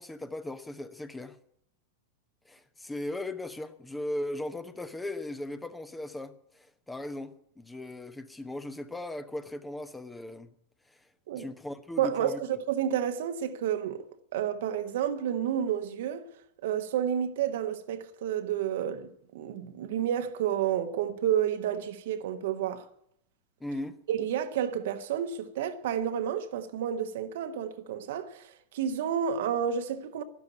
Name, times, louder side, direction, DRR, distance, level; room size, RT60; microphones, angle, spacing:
voice 1, 0.0-1.4 2.4-10.5 10.9-11.0 11.4-12.4 23.6-24.0, left 1 dB, 10° left, 1.1 m, -38 dB
voice 2, 12.0-14.0 14.3-16.2 16.6-22.9 24.1-28.5 28.7-30.2, right 9 dB, 55° right, 1.2 m, -30 dB
12.0 x 12.0 x 9.3 m
figure-of-eight pair, 90°, 0 cm